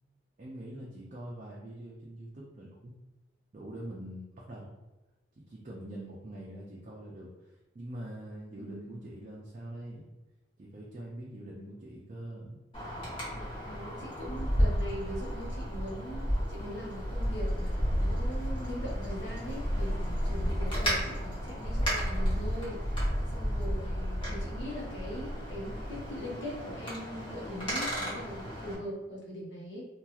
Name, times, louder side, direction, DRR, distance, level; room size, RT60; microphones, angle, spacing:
voice 1, 0.4-2.9 3.5-4.7 5.3-10.1 10.6-12.6, right 1 dB, 40° right, -4 dB, 0.4 m, -44 dB
voice 2, 8.5-9.0 13.3-23.0 23.3-29.9, equal, 75° left, -3 dB, 0.8 m, -41 dB
Wind, 12.7-28.8, equal, 30° left, 0.9 m, -32 dB
2.9 x 2.3 x 2.4 m, 1.1 s
head